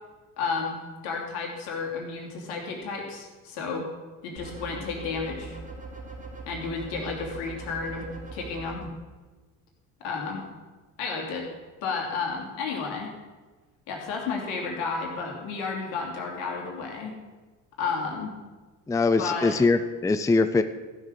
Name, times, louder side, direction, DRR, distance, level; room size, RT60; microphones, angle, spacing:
voice 1, 0.4-0.8 1.0-3.8 4.2-5.6 6.5-8.9 10.0-10.4 11.0-11.5 11.8-13.1 13.9-17.1 17.8-18.3 19.2-19.6, left 4 dB, 70° left, 0 dB, 2.9 m, -32 dB
sound 1, 4.4-8.7, right 3 dB, 20° right, 3.0 m, -41 dB
voice 2, 18.9-20.6, left 3 dB, 10° left, 10 dB, 0.5 m, -22 dB
14.0 x 6.5 x 6.6 m, 1.3 s
hypercardioid pair, 70°, 38 cm